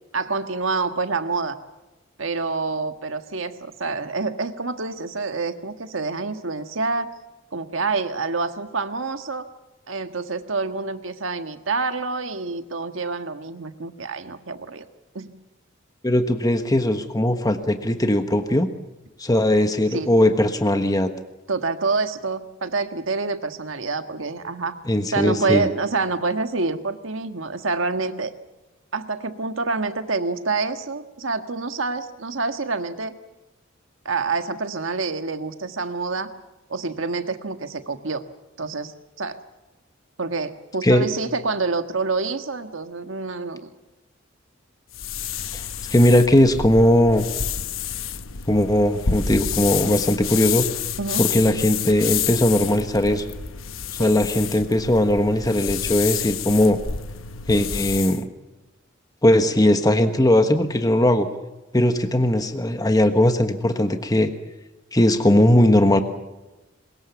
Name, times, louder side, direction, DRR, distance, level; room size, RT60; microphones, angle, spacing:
voice 1, 0.1-1.6 2.2-7.1 7.5-9.5 9.9-14.9 15.1-15.3 19.9-20.1 21.5-24.7 25.1-28.3 28.9-33.2 34.0-36.3 36.7-38.2 38.6-38.9 39.2-39.4 40.2-43.7 51.0-51.2 54.0-54.1, right 4 dB, 70° right, 8 dB, 1.6 m, -27 dB
voice 2, 16.0-18.7 19.2-21.1 24.9-25.7 40.8-41.1 45.5-45.6 45.9-47.3 48.5-50.7 51.2-53.3 54.0-56.8 57.5-58.3 59.2-61.3 61.7-64.3 64.9-66.0, left 1 dB, 20° left, 7 dB, 1.3 m, -19 dB
sound 1, 44.9-58.2, left 8 dB, 80° left, 1.1 m, -29 dB
22.5 x 21.0 x 7.2 m, 1.1 s
head